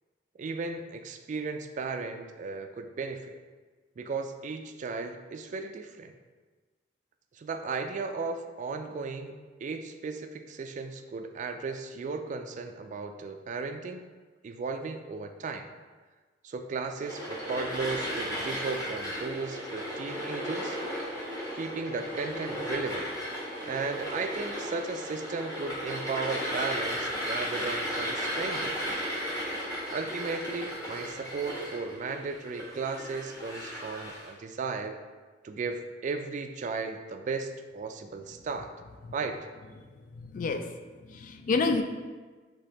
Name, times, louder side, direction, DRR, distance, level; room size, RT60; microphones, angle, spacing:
voice 1, 0.4-3.4 4.0-6.1 7.4-14.0 14.4-15.7 16.4-20.8 21.5-23.1 23.6-28.8 29.9-35.0 35.4-38.7 39.1-39.4, right 4 dB, 45° right, 6 dB, 0.3 m, -35 dB
sound 1, 17.0-34.3, equal, 20° left, 1.3 m, -35 dB
voice 2, 39.8-40.8 41.0-41.8, left 3 dB, 50° left, 7 dB, 0.3 m, -30 dB
5.0 x 3.4 x 2.9 m, 1.4 s
head